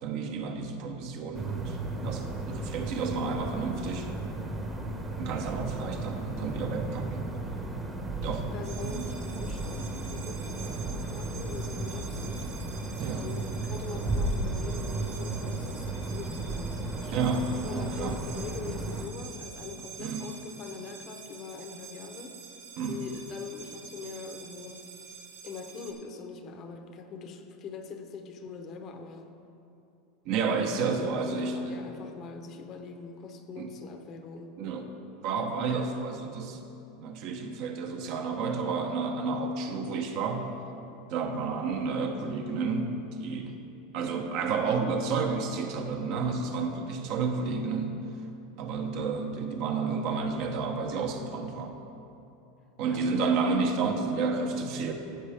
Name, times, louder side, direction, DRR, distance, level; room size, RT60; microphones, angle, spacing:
voice 1, 0.0-4.2 5.2-7.3 8.2-8.5 8.8-9.1 13.0-13.3 17.1-18.2 20.0-20.2 22.8-23.0 30.2-31.8 33.6-33.7 34.6-34.9 35.2-36.6 37.0-40.5 41.1-43.6 43.9-48.0 48.6-51.8 52.8-54.9, right 4 dB, 55° right, 4 dB, 1.0 m, -31 dB
sound 1, 1.3-19.1, right 2 dB, 15° right, 1.0 m, -34 dB
voice 2, 8.5-12.5 13.1-22.4 22.9-24.8 25.4-29.3 30.5-30.8 31.3-34.5 52.9-53.1, left 5 dB, 40° left, 6 dB, 0.9 m, -43 dB
sound 2, 8.6-25.9, right 6 dB, 85° right, 1.9 m, -47 dB
15.0 x 7.4 x 3.5 m, 2.7 s
supercardioid pair, 135°, 0 cm